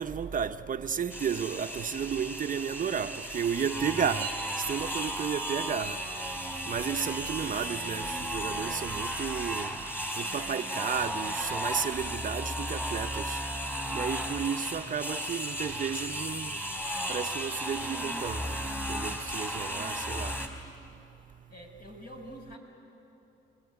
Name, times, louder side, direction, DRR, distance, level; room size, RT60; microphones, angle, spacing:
voice 1, 0.0-4.3 4.7-6.0 6.7-9.7 10.2-13.4 13.9-16.6 17.1-18.4 18.9-20.4, right 7 dB, 45° right, 0.8 m, -33 dB
sound 1, 1.1-20.5, equal, 10° left, 4.2 m, -35 dB
voice 2, 21.5-22.6, equal, 50° left, 6.3 m, -46 dB
29.5 x 21.0 x 9.5 m
cardioid pair, 90°, 20 cm